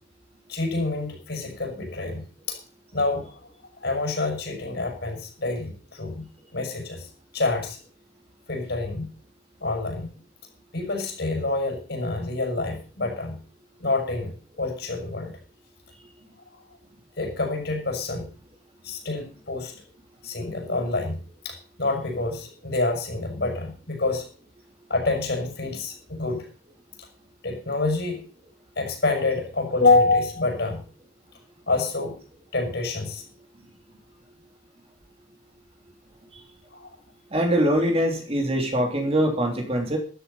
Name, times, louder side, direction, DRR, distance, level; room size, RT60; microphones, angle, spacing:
voice 1, 0.5-2.6 2.9-3.3 3.8-6.3 6.5-7.1 7.3-7.8 8.5-9.1 9.6-10.1 10.7-13.4 13.8-15.3 17.2-18.3 18.8-19.7 20.2-21.2 21.4-24.2 24.9-26.4 27.4-28.2 28.8-30.8 31.7-32.2 32.5-33.2 36.7-36.9, left 3 dB, 55° left, 3 dB, 6.5 m, -27 dB
voice 2, 37.3-40.0, equal, 30° right, 2 dB, 3.0 m, -23 dB
14.0 x 12.0 x 5.5 m, 0.39 s
head